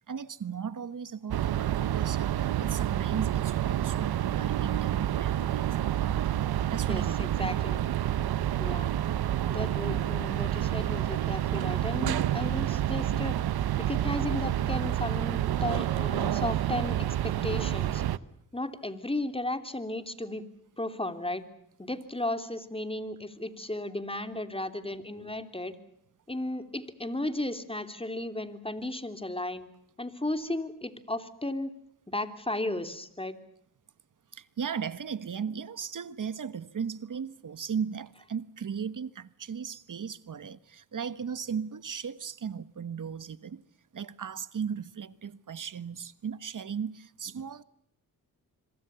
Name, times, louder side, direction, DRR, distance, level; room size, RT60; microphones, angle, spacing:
voice 1, 0.1-5.8 6.7-7.3 34.3-43.6 43.9-47.6, right 7 dB, 55° right, 1.4 m, -36 dB
sound 1, 1.3-18.2, right 12 dB, 85° right, 0.9 m, -28 dB
voice 2, 6.9-7.8 8.6-8.9 9.5-13.4 13.8-18.0 18.5-20.5 20.8-21.4 21.8-25.7 26.3-29.7 30.0-31.7 32.1-33.3, left 1 dB, 15° left, 3.2 m, -34 dB
26.0 x 24.0 x 6.9 m
cardioid pair, 50°, 36 cm